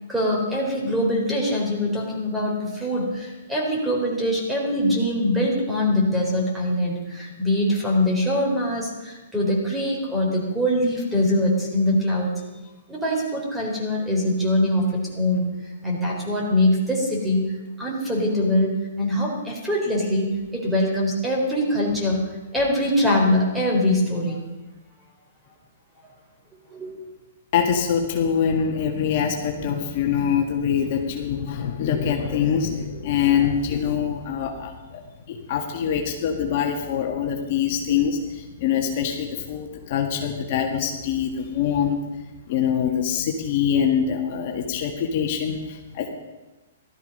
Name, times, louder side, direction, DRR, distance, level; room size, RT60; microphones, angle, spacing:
voice 1, 0.1-12.3 12.9-17.5 17.8-24.4 26.7-26.9, left 1 dB, 5° right, -2 dB, 4.0 m, -23 dB
voice 2, 27.5-42.0 42.5-46.1, left 8 dB, 50° left, 1 dB, 1.8 m, -24 dB
16.0 x 13.0 x 5.5 m, 1.1 s
hypercardioid pair, 140°, 0 cm